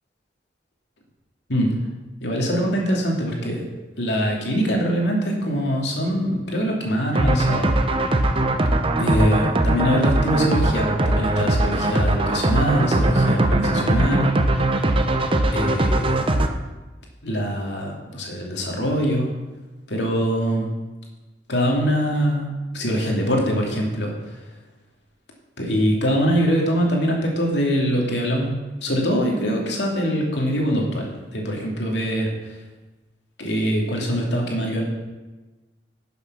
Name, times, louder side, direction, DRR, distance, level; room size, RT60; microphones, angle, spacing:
voice 1, 2.2-3.7 4.0-7.7 9.0-14.3 14.6-14.7 15.5-16.2 17.2-19.3 19.9-20.7 21.5-24.1 25.6-28.5 28.8-32.3 33.4-34.8, equal, 70° left, 0 dB, 2.6 m, -23 dB
sound 1, 7.2-16.5, right 1 dB, 30° right, 0.8 m, -20 dB
11.5 x 7.1 x 6.1 m, 1.2 s
head